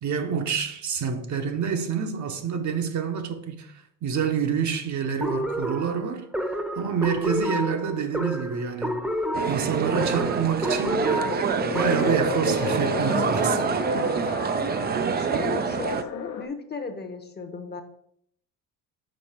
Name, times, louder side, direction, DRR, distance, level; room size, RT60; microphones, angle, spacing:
voice 1, 0.0-3.7 4.0-6.2 6.8-9.0 9.5-14.4, right 6 dB, 45° right, 1.0 m, -28 dB
sound 1, 5.2-12.3, equal, 5° right, 0.8 m, -29 dB
sound 2, 9.3-16.0, right 6 dB, 25° right, 0.4 m, -26 dB
sound 3, 11.1-16.5, left 8 dB, 65° left, 0.9 m, -32 dB
voice 2, 15.1-17.8, left 4 dB, 25° left, 0.9 m, -35 dB
5.4 x 4.1 x 4.3 m
supercardioid pair, 80°, 39 cm